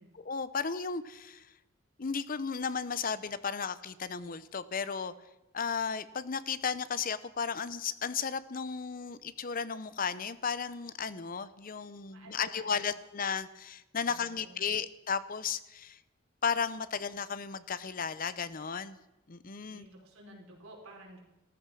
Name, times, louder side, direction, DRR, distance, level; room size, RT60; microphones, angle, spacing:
voice 1, 0.2-1.5 2.0-5.1 5.5-16.0 16.4-19.0 19.3-19.9, left 6 dB, 40° left, 15 dB, 0.7 m, -34 dB
voice 2, 12.1-12.9 14.0-14.8 19.7-21.2, right 1 dB, 90° right, -1 dB, 4.7 m, -53 dB
14.5 x 14.0 x 6.3 m, 0.96 s
head